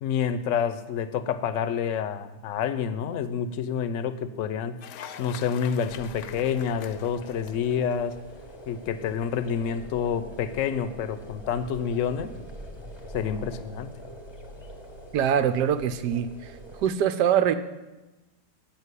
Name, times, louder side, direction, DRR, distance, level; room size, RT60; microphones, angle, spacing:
voice 1, 0.0-4.8 5.2-8.2 8.7-12.3 13.1-13.9, left 7 dB, 60° left, 12 dB, 0.9 m, -28 dB
Cheering / Applause, 4.8-8.5, left 9 dB, 75° left, 1.2 m, -44 dB
sound 1, 5.9-16.9, equal, 20° left, 0.8 m, -44 dB
voice 2, 15.1-16.5 16.8-17.6, right 9 dB, 85° right, 10 dB, 1.2 m, -23 dB
8.6 x 6.8 x 8.2 m, 1.1 s
omnidirectional pair, 1.8 m